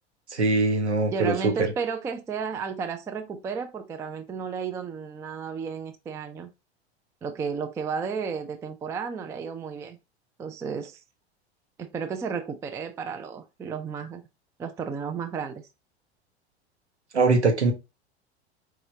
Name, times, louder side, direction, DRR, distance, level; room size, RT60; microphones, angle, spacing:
voice 1, 0.3-1.5 17.1-17.7, right 3 dB, 80° right, 1.0 m, -22 dB
voice 2, 1.1-6.5 7.2-10.0 10.4-11.0 11.8-14.2 14.6-15.7, right 6 dB, 10° right, 0.3 m, -33 dB
4.8 x 2.9 x 2.7 m
figure-of-eight pair, 80°, 33 cm